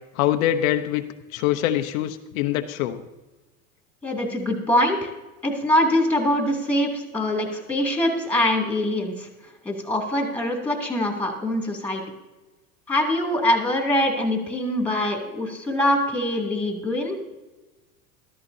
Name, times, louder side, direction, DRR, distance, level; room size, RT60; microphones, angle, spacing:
voice 1, 0.1-1.0 1.3-3.1, left 12 dB, 75° left, 7 dB, 0.8 m, -24 dB
voice 2, 4.0-5.1 5.4-9.3 9.6-12.0 12.9-17.2, left 1 dB, 5° left, 1 dB, 2.7 m, -23 dB
14.0 x 13.0 x 2.7 m, 1.1 s
supercardioid pair, 115°, 41 cm